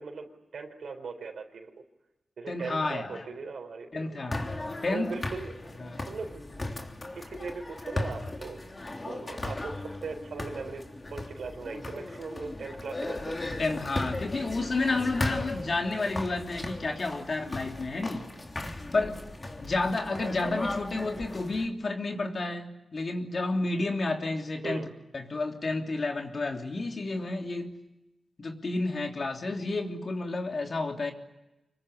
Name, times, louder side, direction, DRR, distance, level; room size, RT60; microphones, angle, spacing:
voice 1, 0.0-1.7 2.4-4.3 4.8-6.4 7.1-8.6 9.0-10.8 11.1-13.4 20.2-20.4 24.6-24.9, right 4 dB, 75° right, 3 dB, 4.3 m, -39 dB
voice 2, 2.5-3.3 3.9-4.5 4.8-5.2 5.8-6.1 13.6-18.3 18.9-19.2 19.6-24.9 25.1-27.7 28.4-31.1, left 3 dB, 45° left, 3 dB, 3.2 m, -31 dB
sound 1, 4.3-21.7, left 2 dB, 30° left, 3.2 m, -37 dB
26.0 x 22.5 x 10.0 m, 0.97 s
wide cardioid pair, 90°, 0 cm